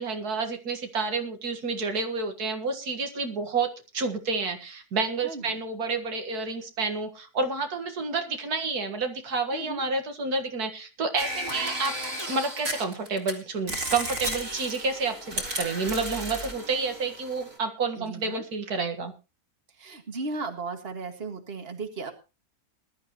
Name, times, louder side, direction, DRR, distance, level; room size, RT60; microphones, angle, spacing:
voice 1, 0.0-11.9 12.3-19.1, right 4 dB, 85° right, 5 dB, 2.2 m, -29 dB
voice 2, 5.2-5.6 9.5-9.8 18.0-18.4 19.7-22.1, right 3 dB, 40° right, 5 dB, 2.1 m, -36 dB
sound 1, 11.2-13.3 13.7-17.6, right 1 dB, 60° right, 3.2 m, -34 dB
20.5 x 12.0 x 3.0 m, 0.29 s
omnidirectional pair, 1.6 m